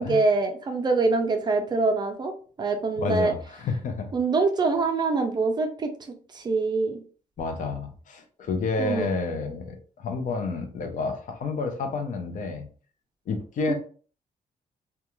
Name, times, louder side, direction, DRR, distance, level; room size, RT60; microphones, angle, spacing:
voice 1, 0.0-2.3 2.6-3.3 4.1-5.9 6.3-7.0 8.8-9.1 13.7-13.8, right 3 dB, 30° right, 5 dB, 0.4 m, -24 dB
voice 2, 3.0-4.1 7.4-12.6 13.3-13.7, left 4 dB, 55° left, 5 dB, 0.5 m, -30 dB
2.4 x 2.2 x 2.9 m, 0.41 s
wide cardioid pair, 170°, 15 cm